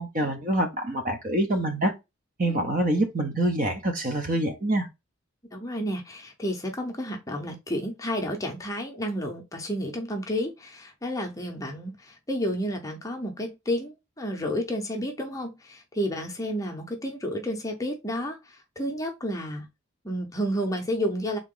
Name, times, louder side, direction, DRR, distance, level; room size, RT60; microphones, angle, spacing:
voice 1, 0.0-1.9 2.4-4.9, right 1 dB, 40° right, 0.8 m, -26 dB
voice 2, 5.5-19.7 20.0-21.4, equal, 15° left, 0.7 m, -31 dB
3.7 x 2.9 x 3.8 m
head